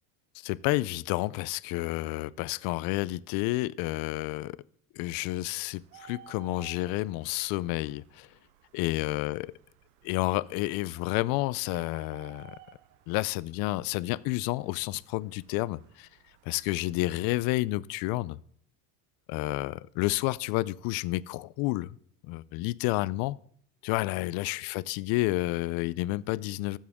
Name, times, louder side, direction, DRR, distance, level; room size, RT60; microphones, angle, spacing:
voice 1, 0.4-4.6 5.0-8.3 8.7-9.5 10.0-12.5 13.1-16.1 16.5-18.4 19.3-21.9 22.3-23.4 23.8-26.8, left 19 dB, 70° left, 20 dB, 0.5 m, -30 dB
Bird, 5.7-16.9, right 10 dB, 90° right, 1.0 m, -56 dB
13.0 x 7.4 x 3.6 m, 0.62 s
cardioid pair, 130°, 37 cm